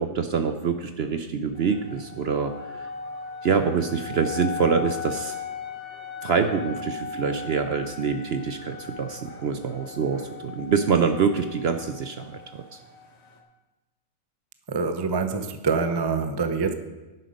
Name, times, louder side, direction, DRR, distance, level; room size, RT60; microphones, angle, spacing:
voice 1, 0.0-2.9 3.4-5.3 6.2-12.8, right 6 dB, 60° right, 7 dB, 0.7 m, -25 dB
sound 1, 1.5-13.4, left 5 dB, 45° left, 1.4 m, -38 dB
voice 2, 14.7-16.7, right 4 dB, 35° right, 8 dB, 0.4 m, -25 dB
10.5 x 8.4 x 5.2 m, 1.1 s
omnidirectional pair, 1.6 m